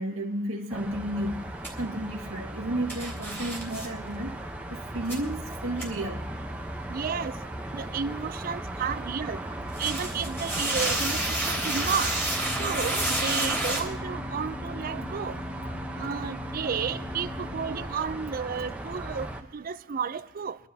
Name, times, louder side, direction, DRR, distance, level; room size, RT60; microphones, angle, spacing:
voice 1, 0.0-6.3 10.6-10.7 12.0-12.1 13.4-13.5 16.3-16.5 18.1-18.2, right 1 dB, 75° right, 1.7 m, -33 dB
sound 1, 0.7-19.4, right 1 dB, 5° right, 0.8 m, -37 dB
sound 2, 1.6-1.7 2.9-3.9 5.1-5.2 5.8-5.9 9.7-13.8, right 1 dB, 10° left, 3.1 m, -29 dB
voice 2, 6.9-7.3 7.7-9.4 9.8-12.2 12.6-15.4 16.0-20.6, right 6 dB, 40° right, 0.4 m, -32 dB
sound 3, 12.3-17.8, left 2 dB, 25° left, 2.6 m, -41 dB
23.5 x 12.0 x 2.8 m
head